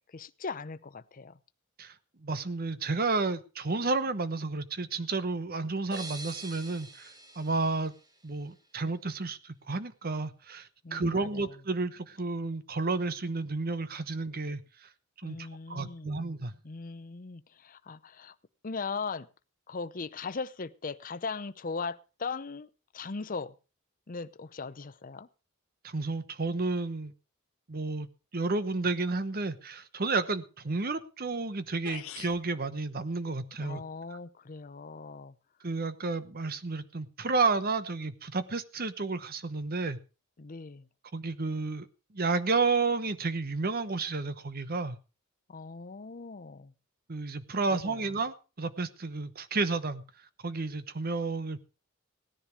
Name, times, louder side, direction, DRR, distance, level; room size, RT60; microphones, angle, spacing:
voice 1, 0.1-1.3 10.8-11.5 15.2-16.2 16.6-18.3 18.6-19.3 19.7-22.7 22.9-23.5 24.1-25.3 33.6-35.3 40.4-40.9 45.5-46.7 47.7-48.0, left 4 dB, 40° left, 0.7 m, -39 dB
voice 2, 2.2-7.1 7.4-7.9 8.2-14.9 15.2-16.5 25.8-27.1 27.7-28.1 28.3-33.8 34.1-34.2 35.6-40.0 41.1-41.9 42.1-45.0 47.1-50.0 50.4-51.6, right 3 dB, 45° right, 1.0 m, -31 dB
sound 1, 5.9-8.7, right 3 dB, 20° right, 1.6 m, -46 dB
sound 2, 31.5-31.6 31.8-32.4, left 8 dB, 85° left, 1.2 m, -42 dB
17.0 x 10.5 x 4.8 m
head